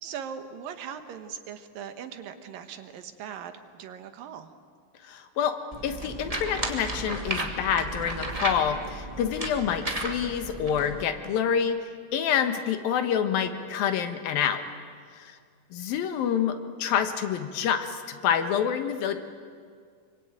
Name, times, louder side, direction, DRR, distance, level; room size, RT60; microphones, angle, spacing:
voice 1, 0.0-4.5, right 8 dB, 75° right, 9 dB, 3.0 m, -40 dB
voice 2, 5.0-14.6 15.1-15.4 15.7-19.3, left 8 dB, 85° left, 8 dB, 3.2 m, -27 dB
sound 1, 5.7-11.0, right 1 dB, 15° right, 1.7 m, -34 dB
25.5 x 24.5 x 9.0 m, 2.1 s
omnidirectional pair, 4.0 m